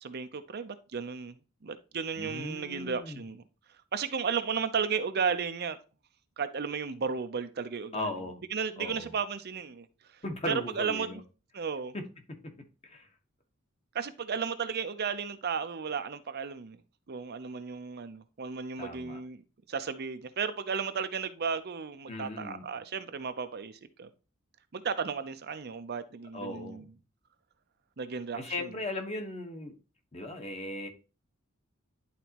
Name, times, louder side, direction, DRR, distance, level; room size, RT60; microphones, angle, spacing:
voice 1, 0.0-1.3 1.6-3.4 3.9-5.8 6.4-8.1 8.5-9.9 10.5-11.1 11.5-11.9 13.9-16.8 17.1-19.4 19.7-24.1 24.7-26.8 28.0-28.7, right 6 dB, 50° right, 0.6 m, -34 dB
voice 2, 2.2-3.2 7.9-8.4 8.8-9.1 10.2-11.2 11.9-12.0 12.8-13.1 18.8-19.2 22.1-22.6 26.3-26.9 28.3-29.7 30.1-30.9, left 2 dB, 30° left, 1.3 m, -37 dB
11.0 x 4.1 x 2.9 m
head